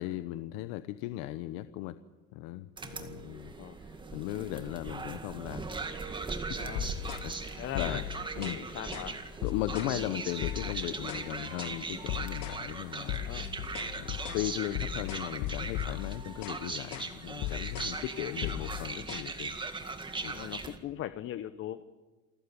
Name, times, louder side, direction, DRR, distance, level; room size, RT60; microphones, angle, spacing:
voice 1, 0.0-2.0 2.3-3.5 3.8-5.7 6.2-6.3 6.8-8.0 8.4-8.8 9.4-13.3 14.0-19.6 20.2-20.3, left 15 dB, 85° left, 12 dB, 1.0 m, -37 dB
sound 1, 2.8-20.8, right 3 dB, 15° right, 2.1 m, -39 dB
sound 2, 6.8-7.3 7.8-8.6 8.9-9.1 9.4-10.0 10.4-11.3 11.6-11.8 12.1-12.6 13.1-16.6 16.9-17.1 17.4-18.0 18.4-19.2, left 14 dB, 60° left, 1.2 m, -37 dB
voice 2, 7.6-8.0 8.5-9.2 13.3-13.5 18.0-18.1 20.3-21.8, left 11 dB, 40° left, 13 dB, 0.9 m, -40 dB
28.5 x 15.0 x 9.9 m, 1.2 s
cardioid pair, 145°, 32 cm